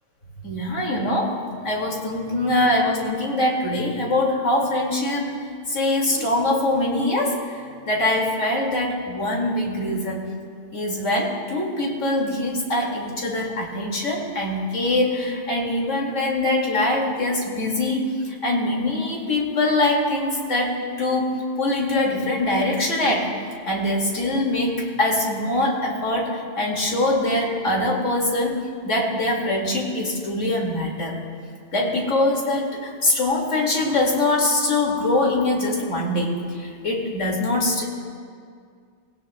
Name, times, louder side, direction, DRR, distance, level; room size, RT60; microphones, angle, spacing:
voice 1, 0.4-1.4 1.6-5.3 5.7-10.3 10.7-23.3 23.7-31.1 31.7-37.8, left 1 dB, 90° left, -1 dB, 2.5 m, -23 dB
20.0 x 17.0 x 2.2 m, 2.2 s
omnidirectional pair, 1.3 m